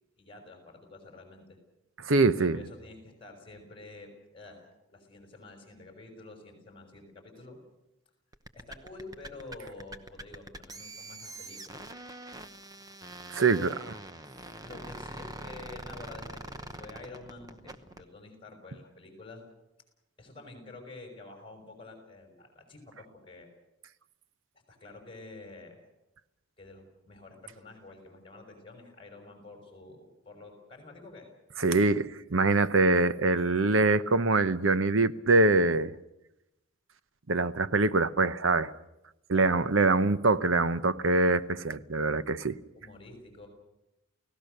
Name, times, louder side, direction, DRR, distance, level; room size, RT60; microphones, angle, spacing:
voice 1, 0.2-1.6 2.3-7.6 8.5-11.9 13.4-13.7 14.6-19.4 20.2-23.5 24.7-25.9 26.6-31.3 39.3-39.6 42.7-43.5, left 2 dB, 25° left, 5.6 m, -48 dB
voice 2, 2.0-2.6 13.3-13.7 31.6-35.9 37.3-38.7 39.3-42.6, right 3 dB, 75° right, 0.9 m, -24 dB
sound 1, 8.3-18.0, right 2 dB, 20° right, 1.0 m, -44 dB
29.5 x 17.5 x 6.7 m
head